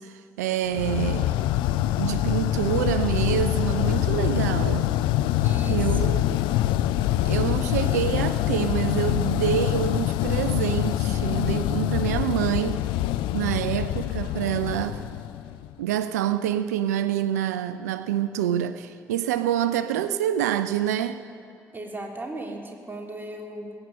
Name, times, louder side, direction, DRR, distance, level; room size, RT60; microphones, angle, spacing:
voice 1, 0.0-1.3 2.0-4.9 5.7-6.4 7.2-12.8 13.3-15.0 15.8-21.2, right 10 dB, 80° right, 0.3 m, -27 dB
sound 1, 0.7-15.7, left 13 dB, 70° left, 0.4 m, -25 dB
voice 2, 5.4-6.3 21.7-23.7, right 2 dB, 20° right, 3.2 m, -36 dB
21.0 x 8.9 x 6.6 m
figure-of-eight pair, 40°, 9 cm